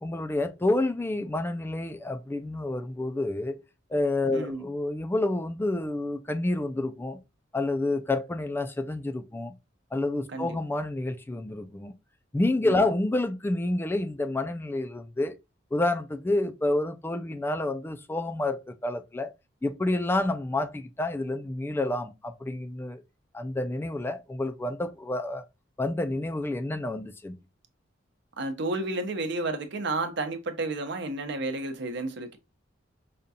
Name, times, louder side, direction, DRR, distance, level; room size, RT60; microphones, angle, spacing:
voice 1, 0.0-3.6 3.9-7.2 7.5-9.5 9.9-11.9 12.3-15.4 15.7-19.3 19.6-23.0 23.3-25.4 25.8-27.4, left 2 dB, 10° left, 0.3 m, -29 dB
voice 2, 4.3-4.6 10.3-10.6 12.6-12.7 28.4-32.4, right 2 dB, 65° right, 0.7 m, -31 dB
5.0 x 2.3 x 2.6 m
head